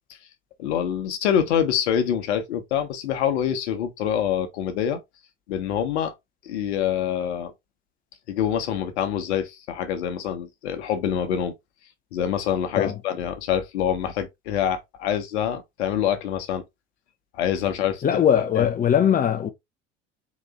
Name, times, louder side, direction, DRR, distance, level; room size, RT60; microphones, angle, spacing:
voice 1, 0.6-5.0 5.5-6.1 6.4-7.5 8.3-11.5 12.1-16.6 17.3-18.2 18.6-18.7, left 9 dB, 60° left, 1.2 m, -25 dB
voice 2, 18.0-19.5, left 9 dB, 25° left, 0.8 m, -20 dB
4.1 x 3.6 x 3.6 m
figure-of-eight pair, 65°, 37 cm